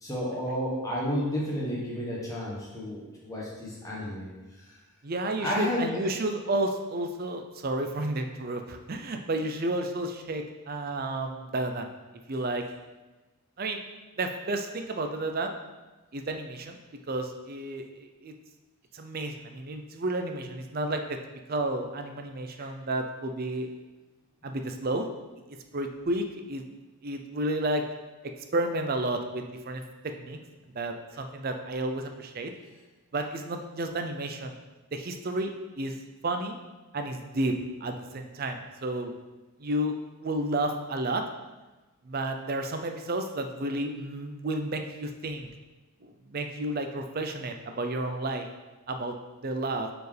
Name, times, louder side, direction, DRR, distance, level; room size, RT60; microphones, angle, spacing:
voice 1, 0.0-4.3 5.4-5.9, left 1 dB, 15° left, -5 dB, 1.3 m, -31 dB
voice 2, 5.0-11.9 12.3-12.6 13.6-13.8 14.2-15.6 16.1-16.8 17.1-18.3 18.9-21.2 21.5-23.7 24.4-25.1 25.7-26.6 27.0-27.8 28.5-30.4 30.7-32.5 33.1-34.5 34.9-36.0 36.2-36.6 36.9-37.6 37.8-39.1 39.6-39.9 40.2-41.2 42.0-45.5 46.0-48.5 48.9-49.2 49.4-49.9, right 1 dB, 40° right, 5 dB, 0.5 m, -31 dB
6.6 x 4.4 x 3.4 m, 1.2 s
head